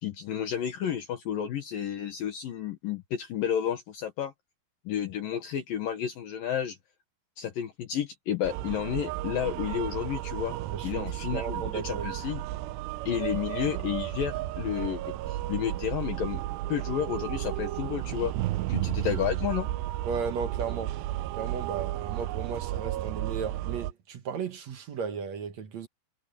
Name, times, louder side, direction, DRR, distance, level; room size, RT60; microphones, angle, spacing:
voice 1, 0.0-4.3 4.9-6.8 7.4-10.6 10.8-12.4 13.1-16.4 16.7-18.3 18.7-19.7, left 9 dB, 65° left, 2.7 m, -31 dB
sound 1, 8.4-23.9, right 15 dB, 80° right, 2.7 m, -33 dB
voice 2, 10.7-12.1 18.6-18.7 20.0-21.0 21.3-25.9, right 6 dB, 60° right, 1.8 m, -35 dB
omnidirectional pair, 5.1 m